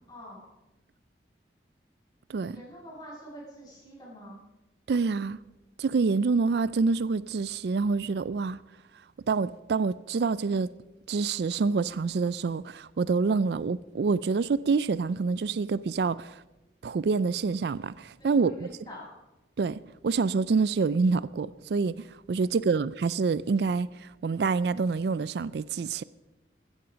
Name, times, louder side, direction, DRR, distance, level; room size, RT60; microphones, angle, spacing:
voice 1, 0.1-0.5 2.5-4.4 18.2-19.1, equal, 25° left, 7.2 m, -46 dB
voice 2, 4.9-5.4 5.8-8.6 9.3-10.7 11.1-16.4 16.8-18.7 19.6-26.0, right 4 dB, 65° right, 0.4 m, -27 dB
15.5 x 13.5 x 5.1 m
head